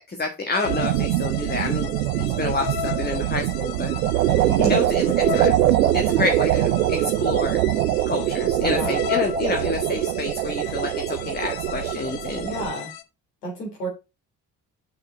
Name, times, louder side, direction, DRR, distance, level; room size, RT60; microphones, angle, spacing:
voice 1, 0.0-1.9 2.2-3.9 4.7-5.5 5.9-7.6 8.1-12.5, left 3 dB, 20° left, 4 dB, 1.5 m, -28 dB
sound 1, 0.5-13.0, left 11 dB, 50° left, 1.0 m, -34 dB
sound 2, 0.6-12.7, right 14 dB, 80° right, 0.6 m, -23 dB
voice 2, 8.6-9.0 12.4-12.9 13.4-13.9, right 1 dB, 80° left, -1 dB, 3.4 m, -30 dB
6.3 x 6.1 x 4.4 m, 0.26 s
figure-of-eight pair, 45°, 46 cm